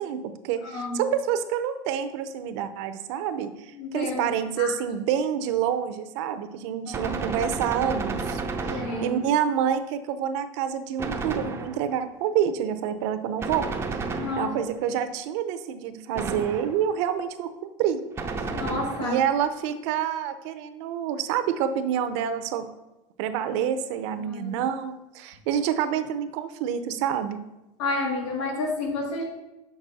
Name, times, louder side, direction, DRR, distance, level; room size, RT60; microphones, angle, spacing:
voice 1, 0.0-13.7 14.0-18.0 18.4-18.5 19.0-22.7 23.2-27.4, right 9 dB, 65° right, 10 dB, 0.7 m, -28 dB
voice 2, 0.6-1.1 3.7-4.3 4.6-4.7 6.9-7.0 8.7-9.2 14.2-14.5 18.5-19.2 24.2-24.6 27.8-29.2, left 2 dB, 80° left, -1 dB, 2.2 m, -30 dB
Gunshot gunfire, 6.9-9.4 11.0-12.0 13.4-14.8 16.1-17.0 18.2-19.3, right 4 dB, 15° right, 0.6 m, -32 dB
6.4 x 6.0 x 4.1 m, 0.99 s
supercardioid pair, 135°, 16 cm